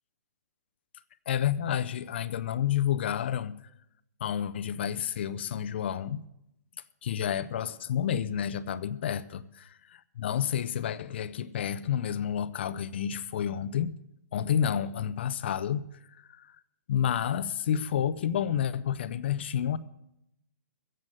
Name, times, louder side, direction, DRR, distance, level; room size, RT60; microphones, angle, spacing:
voice 1, 1.3-3.5 4.2-6.2 7.0-9.6 10.2-13.9 14.3-16.6 16.9-19.8, left 9 dB, 40° left, 0.5 m, -30 dB
15.0 x 7.8 x 7.8 m
hypercardioid pair, 175°, 9 cm